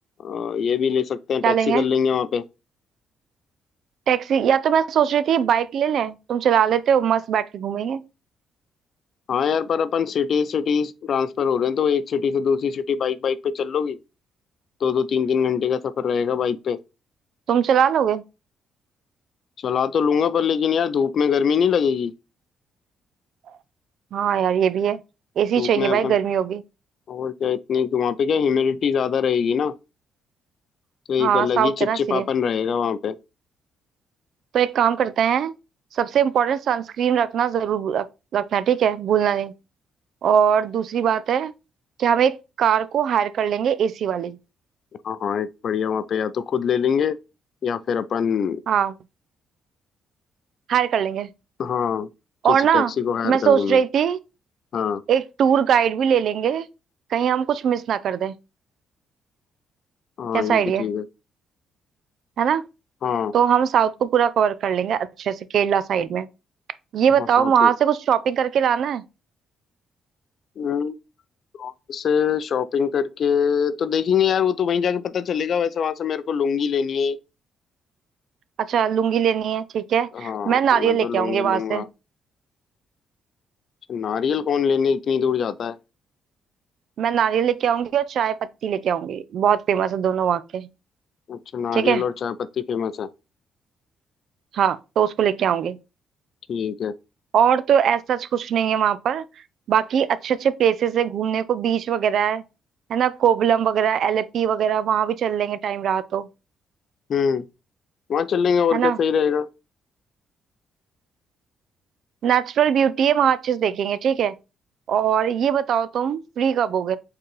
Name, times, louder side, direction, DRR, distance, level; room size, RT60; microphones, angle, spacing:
voice 1, 0.2-2.4 9.3-14.0 14.8-16.8 19.6-22.1 25.6-26.2 27.1-29.7 31.1-33.2 45.0-47.2 47.6-48.6 51.6-52.1 52.5-53.8 54.7-55.0 60.2-61.1 63.0-63.3 67.2-67.7 70.6-70.9 71.6-77.2 80.1-81.9 83.9-85.8 91.3-93.1 96.5-96.9 107.1-107.4 108.1-109.5, left 7 dB, 60° left, 0.4 m, -23 dB
voice 2, 1.4-1.8 4.1-8.0 17.5-18.2 24.1-25.0 25.4-26.6 31.2-32.2 34.5-35.5 35.9-38.1 38.3-39.5 40.2-41.5 42.0-44.4 48.7-48.9 50.7-51.3 52.4-52.9 53.2-54.2 55.1-56.7 57.1-58.3 60.3-60.9 62.4-62.6 63.3-66.3 66.9-69.0 78.6-81.9 87.0-90.7 91.7-92.0 94.5-95.8 97.3-99.3 99.7-102.4 102.9-106.3 108.7-109.0 112.2-114.3 114.9-117.0, right 8 dB, 65° right, 0.4 m, -21 dB
4.4 x 3.8 x 3.1 m
cardioid pair, 90°, 0 cm